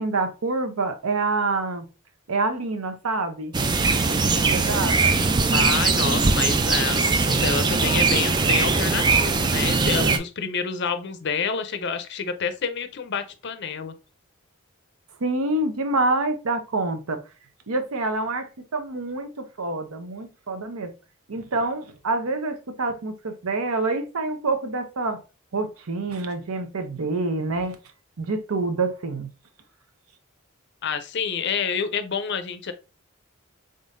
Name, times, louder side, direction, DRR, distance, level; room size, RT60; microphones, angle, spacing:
voice 1, 0.0-1.9 2.3-3.5 4.0-5.2 15.2-17.2 17.7-20.9 21.3-25.2 25.5-27.8 28.2-29.3, right 3 dB, 80° right, 0.7 m, -27 dB
sound 1, 3.5-10.2, right 4 dB, 20° right, 0.3 m, -21 dB
voice 2, 5.5-13.9 30.8-32.7, left 6 dB, 50° left, 0.5 m, -28 dB
3.8 x 3.7 x 2.5 m
head